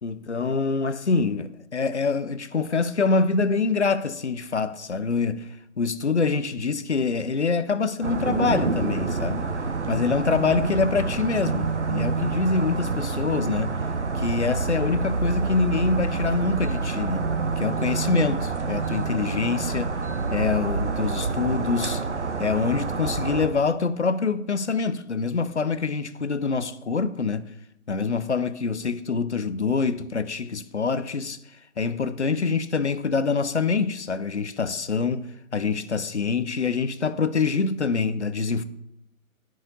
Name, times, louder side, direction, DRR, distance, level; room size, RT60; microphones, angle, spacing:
voice 1, 0.0-5.5 5.8-9.5 9.9-13.8 14.1-17.3 17.6-20.0 20.3-22.0 22.4-27.5 27.9-31.4 31.8-35.3 35.5-38.6, left 4 dB, 55° left, 0.5 m, -25 dB
sound 1, 8.0-23.5, right 4 dB, 55° right, 0.7 m, -27 dB
10.0 x 4.7 x 4.0 m
figure-of-eight pair, 155°, 42 cm